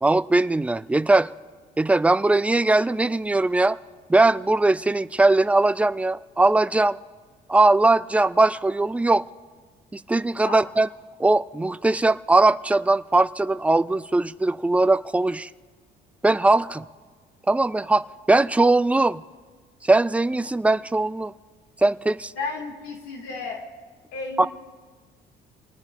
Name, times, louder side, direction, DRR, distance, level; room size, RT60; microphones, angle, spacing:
voice 1, 0.0-1.3 1.8-3.8 4.1-7.0 7.5-9.2 9.9-10.9 11.2-15.5 16.2-16.8 17.5-19.2 19.8-21.3 21.8-22.3 24.4-24.5, right 2 dB, 10° right, 0.4 m, -20 dB
voice 2, 22.4-23.6 24.1-24.5, left 4 dB, 85° left, 2.1 m, -32 dB
28.0 x 19.0 x 2.5 m
cardioid pair, 110°, 17 cm